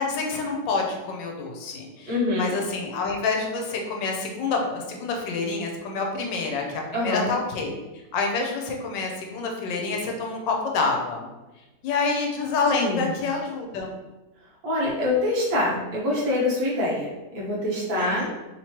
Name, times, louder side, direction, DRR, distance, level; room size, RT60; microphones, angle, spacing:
voice 1, 0.0-2.1 2.4-7.7 8.1-11.3 11.8-13.9 17.9-18.3, left 4 dB, 80° left, 1 dB, 1.3 m, -27 dB
voice 2, 2.0-2.5 6.9-7.3 12.8-13.1 14.6-18.3, left 1 dB, 60° right, -5 dB, 1.3 m, -25 dB
3.5 x 3.0 x 2.9 m, 1.1 s
omnidirectional pair, 2.0 m